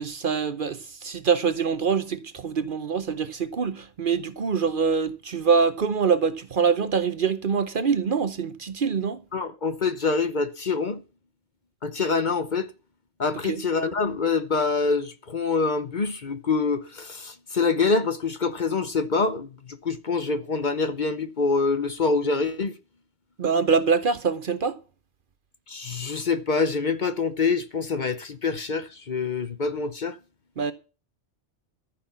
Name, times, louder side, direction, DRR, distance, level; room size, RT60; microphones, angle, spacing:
voice 1, 0.0-9.2 13.5-13.6 23.4-24.8 30.6-30.7, right 6 dB, 50° right, 0.9 m, -24 dB
voice 2, 9.3-11.0 11.8-12.7 13.2-22.7 25.7-30.2, left 4 dB, 45° left, 0.9 m, -25 dB
14.0 x 5.9 x 7.2 m
omnidirectional pair, 1.2 m